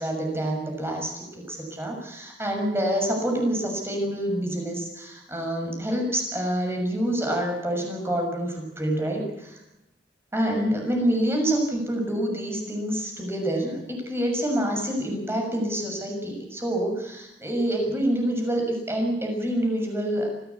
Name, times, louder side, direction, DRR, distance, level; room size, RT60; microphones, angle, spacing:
voice 1, 0.0-9.6 10.3-20.3, right 1 dB, 15° right, 2 dB, 6.5 m, -27 dB
25.0 x 16.5 x 8.4 m, 0.94 s
head